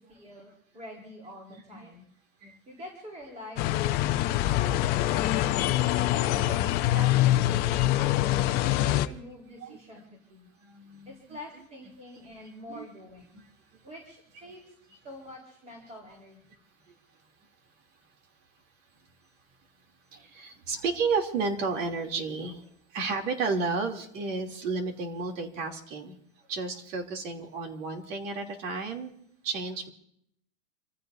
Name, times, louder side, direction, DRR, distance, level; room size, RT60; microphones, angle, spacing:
voice 1, 0.0-2.0 2.7-5.3 6.1-10.0 10.3-10.5 11.1-13.2 13.8-14.6 15.0-16.4, left 1 dB, 15° right, -1 dB, 3.9 m, -46 dB
sound 1, 3.6-9.1, left 14 dB, 25° left, 0.5 m, -24 dB
voice 2, 10.6-11.4 12.7-12.9 13.3-13.4 20.1-22.7 22.9-26.1 26.5-29.1 29.4-29.9, right 4 dB, 65° right, 3 dB, 3.0 m, -32 dB
28.0 x 15.0 x 2.7 m, 0.71 s
supercardioid pair, 155°, 41 cm